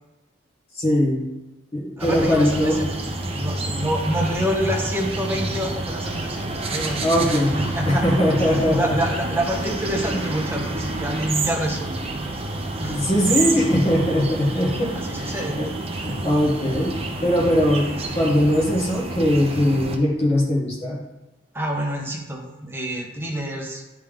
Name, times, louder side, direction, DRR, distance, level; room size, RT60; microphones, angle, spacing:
voice 1, 0.7-1.3 1.7-2.8 7.0-7.5 7.9-8.9 12.9-16.9 17.2-17.9 18.1-21.0, equal, 35° left, -4 dB, 1.5 m, -21 dB
voice 2, 2.0-2.9 3.3-6.4 6.7-12.0 12.8-13.0 13.3-13.4 14.9-15.6 21.5-23.8, right 1 dB, 10° right, -1 dB, 1.0 m, -27 dB
sound 1, 2.0-20.0, right 2 dB, 30° right, 0.6 m, -28 dB
9.1 x 3.5 x 3.5 m, 1.1 s
head